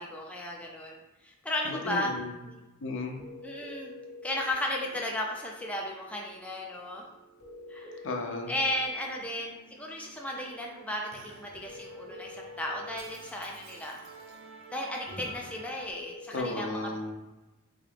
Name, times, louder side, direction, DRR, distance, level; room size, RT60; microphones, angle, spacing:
voice 1, 0.0-2.1 2.5-2.6 3.4-3.9 4.2-7.1 7.7-8.1 8.5-14.0 14.7-16.9, left 1 dB, 5° left, -1 dB, 0.3 m, -35 dB
voice 2, 1.6-2.3 2.8-3.2 8.0-8.5 16.3-17.1, left 2 dB, 60° left, 3 dB, 0.5 m, -34 dB
sound 1, 3.2-4.6 7.4-8.8 11.6-13.1 15.9-16.4, left 3 dB, 85° left, 0.9 m, -46 dB
Musical instrument, 4.7-15.9, right 3 dB, 60° right, 0.6 m, -52 dB
3.7 x 2.4 x 3.3 m, 1.1 s
head